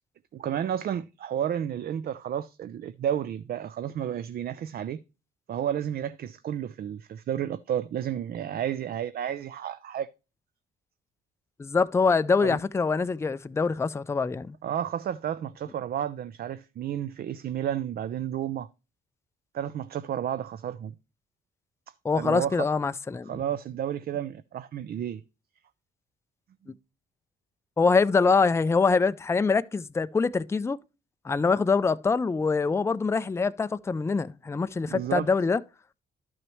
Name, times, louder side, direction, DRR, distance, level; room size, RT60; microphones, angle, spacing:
voice 1, 0.3-5.0 5.5-10.1 12.4-12.6 14.6-18.7 19.5-20.9 22.1-22.7 23.3-25.2 34.9-35.3, right 10 dB, 50° right, 0.4 m, -31 dB
voice 2, 11.6-14.6 22.0-23.3 26.7-26.8 27.8-30.8 31.2-35.6, left 4 dB, 15° left, 0.4 m, -24 dB
12.0 x 6.1 x 3.1 m
cardioid pair, 90°, 20 cm